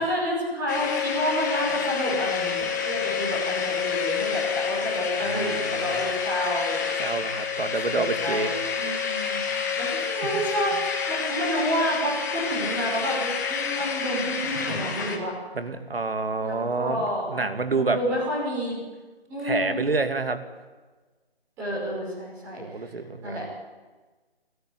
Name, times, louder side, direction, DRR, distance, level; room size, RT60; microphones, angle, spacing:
voice 1, 0.0-2.6 2.8-6.9 7.9-9.4 9.8-15.3 16.4-17.4 17.7-18.8 19.3-19.8 21.6-22.9 23.2-23.4, equal, 10° right, -6 dB, 6.0 m, -29 dB
sound 1, 0.7-15.2, left 6 dB, 20° left, 1.9 m, -28 dB
voice 2, 5.2-6.0 7.0-8.5 8.8-9.0 10.3-10.4 15.5-18.0 19.4-20.4 22.6-23.4, right 3 dB, 65° right, 8 dB, 2.8 m, -28 dB
29.5 x 13.5 x 9.9 m, 1.3 s
figure-of-eight pair, 170°, 31 cm